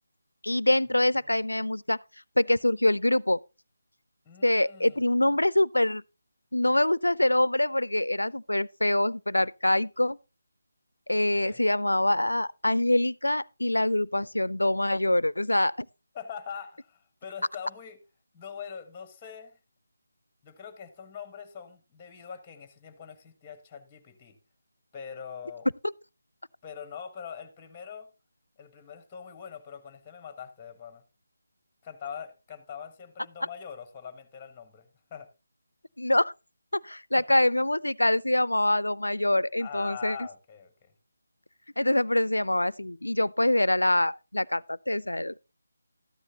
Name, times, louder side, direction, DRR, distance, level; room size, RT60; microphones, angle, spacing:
voice 1, 0.4-2.0 2.4-3.4 4.4-6.0 6.5-10.2 11.1-15.9 25.8-25.9 36.0-36.3 36.7-40.3 41.8-45.4, left 1 dB, 85° left, 0.5 m, -25 dB
voice 2, 4.2-5.3 11.3-11.6 16.1-18.0 18.3-19.6 20.4-24.4 24.9-25.7 26.6-28.1 28.6-31.0 31.8-35.3 37.1-37.2 39.6-40.9, left 7 dB, 15° left, 1.4 m, -43 dB
13.5 x 9.7 x 2.9 m
figure-of-eight pair, 155°, 0 cm